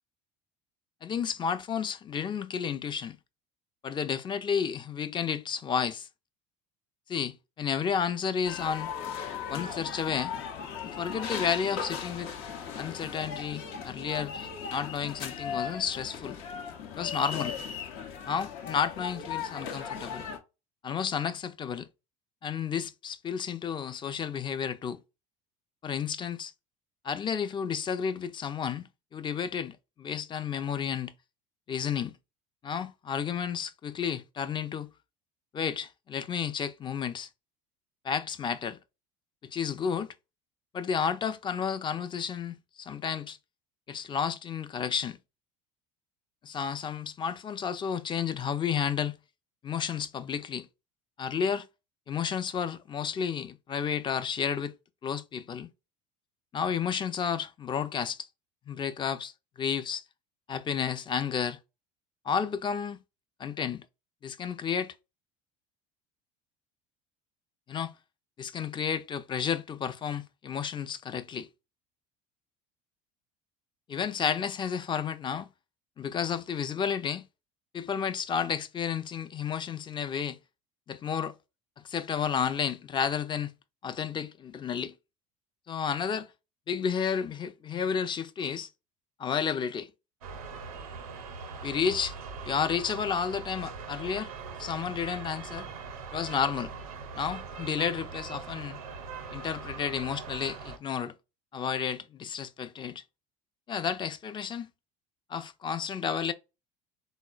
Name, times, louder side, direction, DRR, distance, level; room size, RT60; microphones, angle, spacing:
voice 1, 1.0-3.2 3.8-6.1 7.1-8.9 9.5-10.3 11.0-12.4 12.8-16.4 16.9-17.6 18.3-20.3 20.8-21.9 22.4-25.0 25.8-26.5 27.0-28.9 29.1-31.1 31.7-32.2 32.6-34.9 35.5-37.3 38.0-38.8 39.4-40.1 40.7-43.4 43.9-45.2 46.4-49.2 49.6-50.7 51.2-51.7 52.1-54.7 55.0-55.7 56.5-58.3 58.7-59.3 59.6-60.0 60.5-61.6 62.3-63.0 63.4-63.8 64.2-64.9 67.7-67.9 68.4-71.5 73.9-75.5 76.0-77.2 77.7-80.4 80.9-81.3 81.8-83.5 83.8-84.9 85.7-86.3 86.7-88.7 89.2-89.9 91.6-92.1 92.4-94.3 94.6-95.7 96.1-96.8 97.1-98.8 99.3-101.1 101.5-103.0 103.7-104.7 105.3-106.3, left 7 dB, 25° left, 0.4 m, -31 dB
sound 1, 8.4-20.4, left 7 dB, 65° left, 0.7 m, -37 dB
sound 2, 90.2-100.8, right 5 dB, 90° right, 0.6 m, -41 dB
3.7 x 2.0 x 2.3 m
hypercardioid pair, 75°, 18 cm